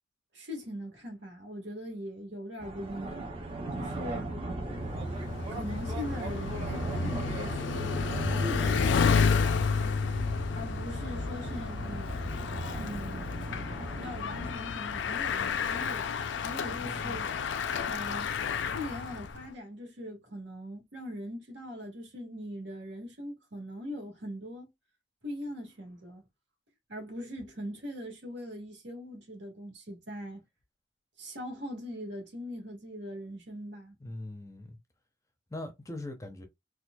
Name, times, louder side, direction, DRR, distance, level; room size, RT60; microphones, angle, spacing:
voice 1, 0.3-3.3 3.7-4.3 5.5-8.0 8.4-9.4 10.5-12.2 12.8-13.2 14.0-16.1 16.4-17.3 17.8-18.3 18.7-24.7 25.2-26.2 26.9-30.4 31.2-34.0, equal, 70° right, 1.6 m, -41 dB
sound 1, 2.6-14.5, right 2 dB, 30° right, 0.8 m, -37 dB
Bicycle, 4.8-19.4, left 5 dB, 70° left, 0.4 m, -31 dB
voice 2, 16.8-17.3 34.0-34.8 35.5-36.4, left 1 dB, 15° left, 0.6 m, -41 dB
4.3 x 2.4 x 2.2 m
head